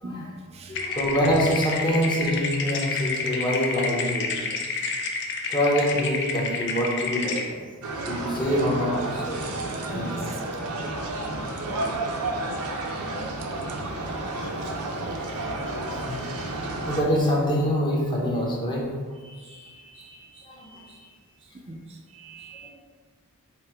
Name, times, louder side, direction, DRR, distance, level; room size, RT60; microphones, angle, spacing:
voice 1, 0.0-0.8 9.9-10.2 19.2-21.0 21.7-21.8 22.1-22.7, right 1 dB, 30° right, 3 dB, 0.3 m, -41 dB
sound 1, 0.7-7.4, left 4 dB, 50° left, 0.5 m, -29 dB
voice 2, 0.7-4.5 5.5-7.6 8.1-9.4 9.9-10.2 13.9-14.0 14.4-14.7 15.0-15.3 15.9-16.5 16.8-18.8 20.5-20.7 22.6-22.7, equal, 20° left, -3 dB, 0.8 m, -26 dB
sound 2, 7.8-17.0, right 2 dB, 85° right, 0.6 m, -31 dB
5.5 x 2.1 x 4.4 m, 1.5 s
head